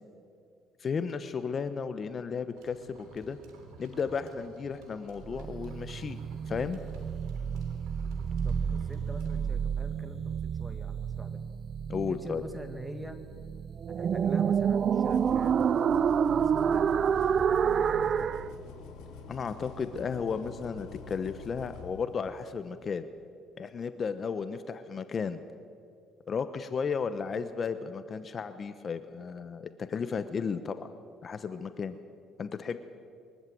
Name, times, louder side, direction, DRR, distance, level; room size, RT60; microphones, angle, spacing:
voice 1, 0.8-3.4 3.8-6.2 6.5-6.8 11.9-12.4 19.3-23.1 23.6-25.4 26.3-30.9 31.2-32.0 32.4-32.8, left 5 dB, 40° left, 11 dB, 0.9 m, -34 dB
sound 1, 2.5-9.4, right 3 dB, 90° right, 3.7 m, -53 dB
sound 2, 5.2-18.5, right 7 dB, 45° right, 0.5 m, -29 dB
voice 2, 8.3-11.4 12.1-13.2 14.0-18.4, right 1 dB, 5° right, 8 dB, 1.9 m, -45 dB
sound 3, 14.7-22.6, left 5 dB, 80° left, 3.9 m, -47 dB
23.0 x 14.0 x 9.3 m, 2.4 s
cardioid pair, 110°, 0 cm